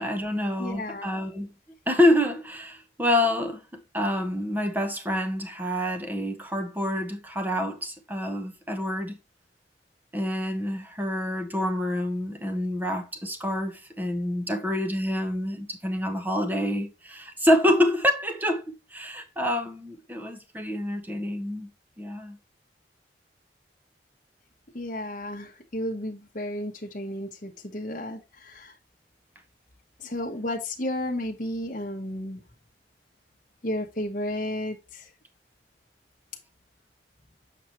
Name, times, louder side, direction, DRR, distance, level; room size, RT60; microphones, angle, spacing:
voice 1, 0.0-1.5 1.9-9.2 10.1-21.7 22.0-22.4, left 1 dB, 10° right, 1.0 m, -27 dB
voice 2, 0.6-1.1 24.7-28.7 30.0-32.4 33.6-35.1, left 1 dB, 45° left, 1.0 m, -33 dB
7.1 x 5.8 x 3.0 m
head